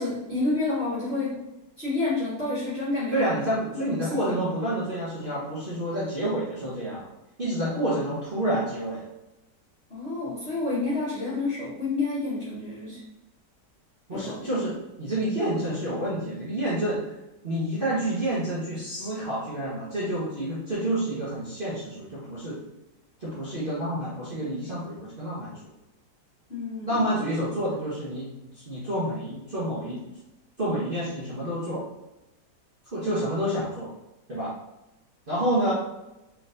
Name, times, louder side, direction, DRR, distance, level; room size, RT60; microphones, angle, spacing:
voice 1, 0.0-1.4 1.8-3.5 3.7-4.5 9.9-13.0 14.1-14.4 26.5-27.0, left 3 dB, 35° left, -10 dB, 1.7 m, -29 dB
voice 2, 3.1-7.1 7.4-9.0 14.1-17.0 17.4-22.6 23.2-25.5 26.9-28.3 28.5-30.1 30.6-31.8 32.9-33.9 34.3-34.5 35.3-35.7, right 1 dB, 35° right, -9 dB, 1.2 m, -28 dB
4.6 x 3.9 x 2.6 m, 0.95 s
omnidirectional pair, 1.9 m